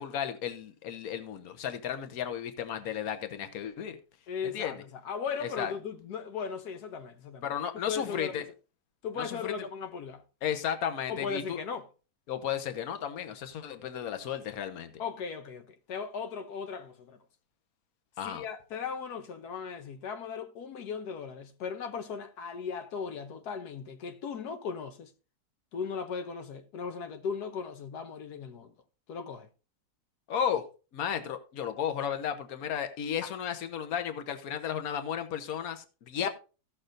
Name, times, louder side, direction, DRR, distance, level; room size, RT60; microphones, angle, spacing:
voice 1, 0.0-4.0 4.5-4.8 5.4-5.7 7.4-8.5 9.2-9.5 10.4-11.6 12.3-14.9 18.2-18.4 30.3-30.7 30.9-36.3, left 9 dB, 70° left, 1.4 m, -34 dB
voice 2, 4.3-4.8 5.0-7.5 7.9-8.4 9.0-10.2 11.1-11.9 15.0-17.2 18.2-25.1 25.7-28.7 29.1-29.5 33.2-33.3 36.2-36.3, left 6 dB, 90° left, 1.4 m, -37 dB
16.0 x 6.6 x 2.5 m
omnidirectional pair, 1.6 m